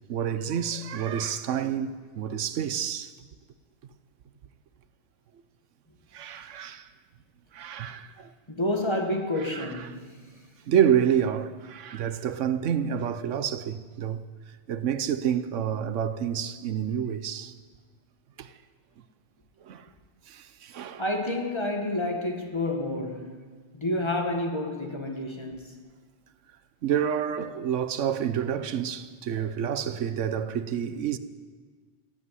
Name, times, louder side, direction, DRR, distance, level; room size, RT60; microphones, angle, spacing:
voice 1, 0.1-3.1 6.1-6.9 7.5-8.3 9.5-9.7 10.7-14.2 14.7-17.5 18.4-18.5 19.6-19.8 20.3-21.0 26.8-31.2, right 9 dB, 85° right, 1.1 m, -28 dB
voice 2, 8.5-10.2 21.0-23.4 23.7-25.8, left 1 dB, 25° left, 1.6 m, -29 dB
16.0 x 9.0 x 9.4 m
omnidirectional pair, 1.2 m